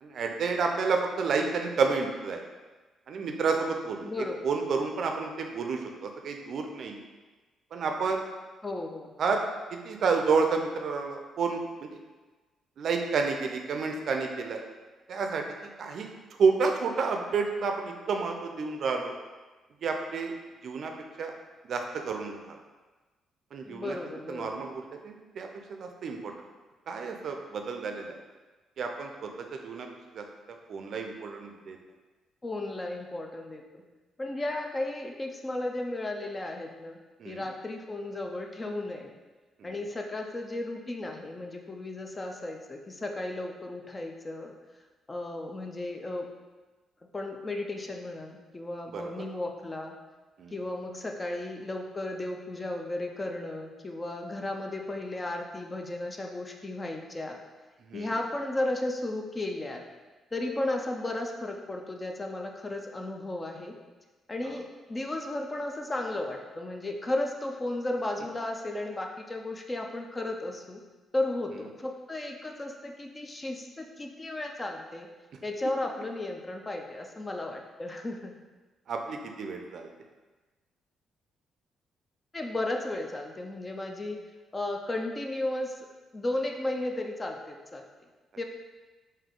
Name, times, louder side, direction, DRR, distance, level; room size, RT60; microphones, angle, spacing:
voice 1, 0.0-2.4 3.1-4.1 4.4-7.0 7.7-8.2 9.2-9.4 9.7-12.0 12.8-14.6 15.1-15.4 15.8-16.1 16.4-19.1 19.8-20.3 20.6-20.9 21.2-21.3 21.6-22.6 23.5-24.0 24.3-26.3 26.9-28.1 28.8-29.9 30.1-30.2 30.7-31.8 37.2-37.4 39.6-39.7 48.9-49.1 50.4-50.5 57.9-58.1 78.9-79.9, right 4 dB, 60° right, 3 dB, 0.4 m, -30 dB
voice 2, 4.0-4.5 8.6-9.1 23.6-24.6 32.4-33.8 34.2-37.0 37.2-39.1 39.6-44.5 45.1-46.3 47.1-49.9 50.5-57.4 57.9-59.8 60.3-63.8 64.3-70.8 71.1-75.1 75.4-78.4 82.3-84.2 84.5-85.9 86.1-87.9 88.4-88.5, left 2 dB, 25° left, 2 dB, 0.5 m, -34 dB
3.8 x 2.6 x 3.7 m, 1.3 s
cardioid pair, 90°, 0 cm